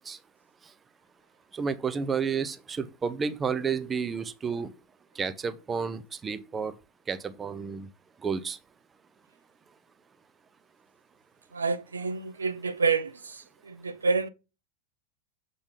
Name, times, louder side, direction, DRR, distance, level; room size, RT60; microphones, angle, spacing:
voice 1, 1.5-4.7 5.2-6.7 7.1-7.9 8.2-8.6, right 6 dB, 20° right, 0.6 m, -31 dB
voice 2, 11.5-14.3, right 4 dB, 75° right, 0.5 m, -28 dB
7.1 x 3.8 x 3.6 m
figure-of-eight pair, 90°, 0 cm